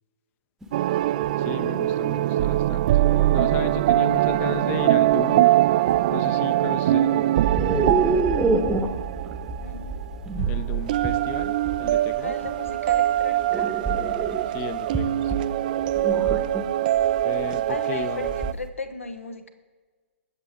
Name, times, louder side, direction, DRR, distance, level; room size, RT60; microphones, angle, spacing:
sound 1, 0.6-0.7 1.2-1.4 2.1-2.2 3.1-3.8 5.1-5.2 5.6-5.9 7.4-18.6, right 3 dB, 5° right, 1.0 m, -28 dB
sound 2, 0.7-10.1 10.4-18.5, right 14 dB, 40° right, 0.3 m, -23 dB
voice 1, 1.4-3.0 3.3-5.5 6.1-7.4 10.5-12.3 14.5-15.4 17.2-18.3, left 9 dB, 25° left, 14 dB, 0.6 m, -35 dB
voice 2, 9.6-10.0 12.2-13.7 17.7-19.5, left 3 dB, 80° left, 9 dB, 1.3 m, -36 dB
21.5 x 7.6 x 3.6 m, 1.5 s
figure-of-eight pair, 120°, 7 cm